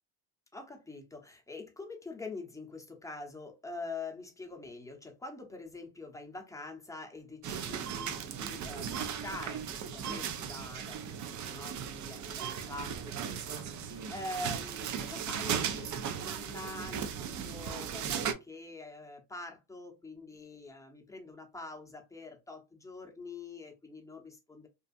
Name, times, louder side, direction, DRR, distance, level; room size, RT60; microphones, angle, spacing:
voice 1, 0.5-24.7, left 3 dB, 5° left, 0.7 m, -45 dB
sound 1, 7.4-18.3, right 8 dB, 40° right, 0.5 m, -37 dB
2.6 x 2.4 x 2.4 m
supercardioid pair, 90°, 44 cm